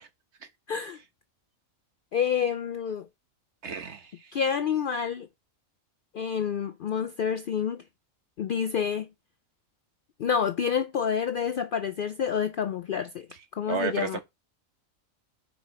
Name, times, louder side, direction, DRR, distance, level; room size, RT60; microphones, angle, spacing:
voice 1, 0.7-1.0 2.1-3.1 4.3-5.3 6.1-7.8 8.4-9.1 10.2-13.3 13.5-14.2, left 7 dB, 65° left, 0.5 m, -28 dB
voice 2, 3.6-4.3 13.7-14.2, right 6 dB, 60° right, 1.3 m, -32 dB
5.3 x 4.9 x 5.6 m
omnidirectional pair, 1.3 m